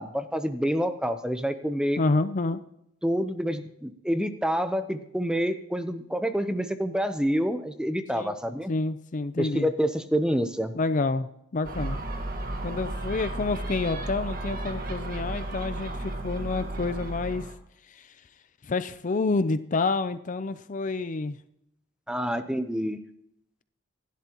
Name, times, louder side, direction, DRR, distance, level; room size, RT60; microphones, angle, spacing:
voice 1, 0.0-2.0 3.0-8.7 9.4-10.7 22.1-23.0, equal, 5° right, 8 dB, 0.7 m, -27 dB
voice 2, 2.0-2.6 8.1-8.3 8.7-9.7 10.7-11.3 11.5-12.0 12.6-17.5 17.9-18.1 18.6-21.4, left 3 dB, 40° left, 12 dB, 0.5 m, -28 dB
Gull seagull, 11.6-17.5, right 2 dB, 45° right, 1.7 m, -33 dB
27.0 x 11.5 x 3.0 m, 0.79 s
head